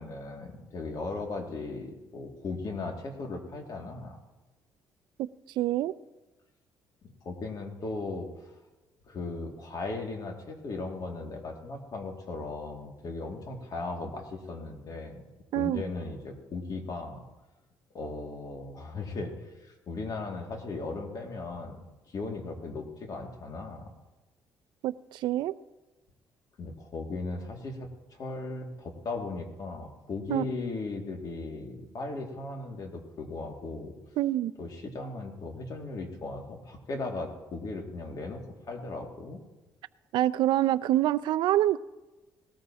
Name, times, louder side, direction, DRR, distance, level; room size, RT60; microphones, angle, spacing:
voice 1, 0.0-4.2 7.2-8.5 9.1-15.2 15.5-17.2 17.9-21.8 22.1-23.8 26.6-33.9 34.6-38.4 38.7-39.4, left 3 dB, 50° left, 2 dB, 2.4 m, -37 dB
voice 2, 5.6-5.9 15.5-15.8 24.8-25.5 30.3-30.4 34.2-34.5 40.1-41.8, right 14 dB, 80° right, 15 dB, 0.4 m, -26 dB
18.5 x 13.5 x 2.9 m, 1.1 s
cardioid pair, 85°, 8 cm